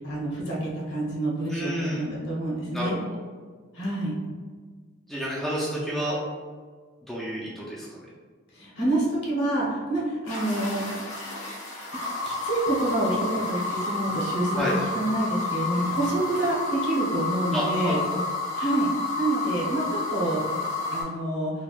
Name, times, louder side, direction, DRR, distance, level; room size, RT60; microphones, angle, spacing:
voice 1, 0.0-3.0 3.7-4.1 8.5-10.8 12.2-18.0 18.6-18.9 19.2-20.4 20.9-21.5, right 1 dB, 60° left, -5 dB, 0.9 m, -27 dB
voice 2, 1.5-2.0 2.7-3.2 5.1-6.2 7.1-7.9 14.5-14.7 17.5-18.0, equal, ahead, -7 dB, 0.3 m, -30 dB
sound 1, 10.3-21.0, left 3 dB, 90° left, 1.1 m, -30 dB
3.3 x 2.2 x 2.4 m, 1.5 s
head